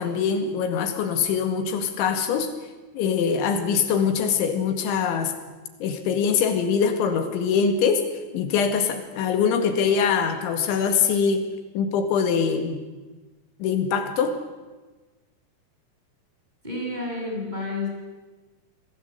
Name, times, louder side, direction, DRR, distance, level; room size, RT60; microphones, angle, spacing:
voice 1, 0.0-2.5 2.9-5.3 5.8-8.0 8.3-11.5 11.7-12.8 13.6-14.3, left 6 dB, 85° left, 7 dB, 4.4 m, -23 dB
voice 2, 16.6-17.9, left 2 dB, 10° right, -1 dB, 7.5 m, -30 dB
28.0 x 20.0 x 8.5 m, 1.2 s
omnidirectional pair, 5.3 m